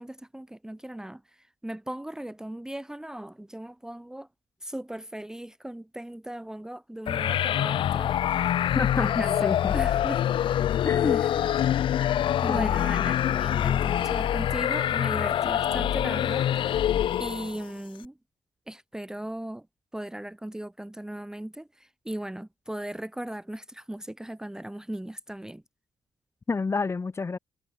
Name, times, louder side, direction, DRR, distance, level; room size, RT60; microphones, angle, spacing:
voice 1, 0.0-4.3 4.6-8.2 8.9-10.2 11.1-11.4 12.4-16.5 17.2-18.2 18.7-19.7 19.9-25.6, right 1 dB, 5° right, 1.0 m, -38 dB
sound 1, 7.1-17.6, left 11 dB, 55° left, 0.4 m, -25 dB
voice 2, 8.7-9.7 10.8-11.2 12.5-12.7 26.5-27.4, left 4 dB, 25° left, 1.6 m, -29 dB
cardioid pair, 110°, 10 cm